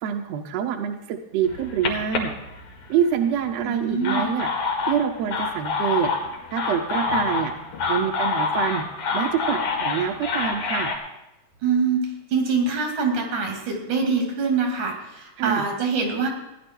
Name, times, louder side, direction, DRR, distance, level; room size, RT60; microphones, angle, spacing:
voice 1, 0.0-2.3 2.9-4.5 4.9-6.1 6.5-7.5 7.9-8.8 9.1-10.9 15.4-15.6, right 8 dB, 70° right, 4 dB, 1.8 m, -26 dB
sound 1, 1.4-3.1 3.8-11.0, left 4 dB, 75° left, 3.5 m, -26 dB
voice 2, 3.6-4.3 11.6-16.3, right 4 dB, 90° right, 2 dB, 3.9 m, -24 dB
16.0 x 11.0 x 4.5 m, 0.93 s
omnidirectional pair, 3.4 m